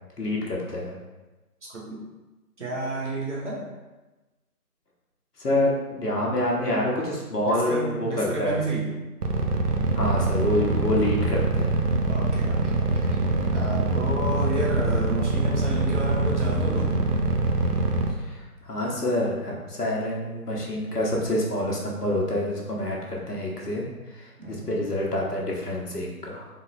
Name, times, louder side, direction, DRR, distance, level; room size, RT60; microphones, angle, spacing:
voice 1, 0.2-0.9 5.4-8.6 9.9-11.8 18.2-26.5, left 1 dB, 75° left, -2 dB, 1.2 m, -27 dB
voice 2, 1.7-2.0 2.6-3.7 7.4-8.9 12.1-17.0 24.4-24.7, right 2 dB, 50° right, -4 dB, 1.1 m, -31 dB
sound 1, 9.2-18.1, right 3 dB, 75° right, 0.7 m, -24 dB
4.0 x 2.1 x 3.9 m, 1.1 s
figure-of-eight pair, 160°, 47 cm